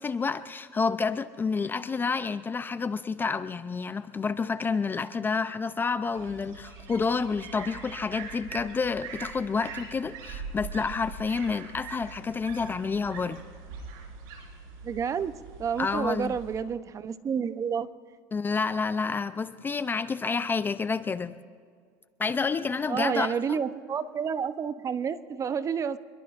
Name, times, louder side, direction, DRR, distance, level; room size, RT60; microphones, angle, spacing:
voice 1, 0.0-13.4 15.8-16.4 18.3-21.4 22.2-23.6, left 4 dB, 20° left, 13 dB, 0.5 m, -29 dB
sound 1, 6.1-16.6, right 4 dB, 75° right, 3.7 m, -43 dB
voice 2, 14.8-15.3 15.6-17.9 22.9-26.0, right 7 dB, 30° right, 13 dB, 0.7 m, -30 dB
26.0 x 22.0 x 2.5 m, 2.1 s
supercardioid pair, 120°, 11 cm